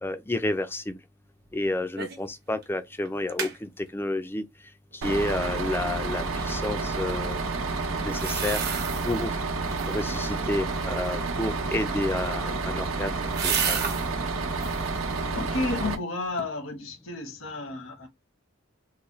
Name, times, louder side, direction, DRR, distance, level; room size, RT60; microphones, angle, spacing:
voice 1, 0.0-1.0 1.5-4.4 5.0-7.4 8.0-8.6 9.1-9.3 9.9-13.1 13.4-13.8, left 2 dB, 10° left, 0.4 m, -30 dB
sound 1, 2.0-2.3 2.6-2.7 3.1-3.6 8.1-9.3 9.6-10.2 12.1-14.1 14.5-14.9 15.4-16.0 16.4-16.5, right 7 dB, 50° right, 0.8 m, -32 dB
Bus, 5.0-15.9, right 3 dB, 80° right, 0.8 m, -30 dB
voice 2, 15.3-18.1, left 3 dB, 75° left, 1.0 m, -32 dB
3.8 x 2.2 x 3.0 m
head